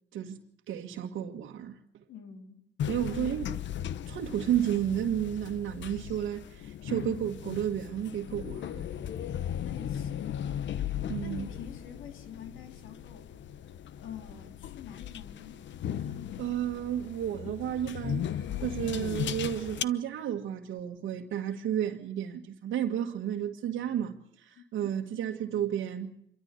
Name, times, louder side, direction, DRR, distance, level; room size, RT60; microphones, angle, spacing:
voice 1, 0.7-1.8 2.9-3.4 4.1-8.8 11.1-11.5 16.4-26.1, right 10 dB, 80° right, 1.7 m, -32 dB
voice 2, 2.1-2.6 3.0-3.4 9.2-10.4 11.2-13.3 14.0-15.6 24.6-24.7, left 8 dB, 90° left, 3.5 m, -46 dB
sound 1, 2.8-19.8, left 10 dB, 70° left, 1.0 m, -37 dB
27.0 x 13.5 x 8.3 m
cardioid pair, 90°, 20 cm